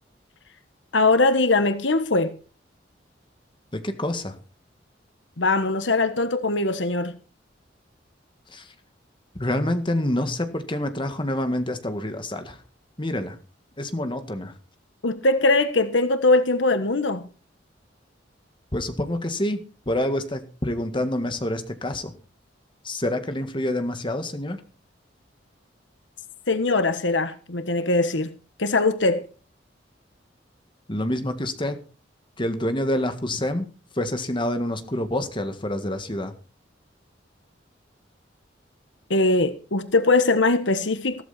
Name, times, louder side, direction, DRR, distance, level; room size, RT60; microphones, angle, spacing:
voice 1, 0.9-2.4 5.4-7.1 15.0-17.2 26.5-28.3 28.6-29.3 39.1-41.2, left 3 dB, 85° left, 1.4 m, -21 dB
voice 2, 3.7-4.4 8.5-8.7 9.4-12.6 13.0-13.4 13.8-14.5 18.7-22.1 22.8-24.6 30.9-31.8 32.4-33.7 33.9-36.3, left 1 dB, 25° left, 1.8 m, -27 dB
15.5 x 13.5 x 4.2 m
head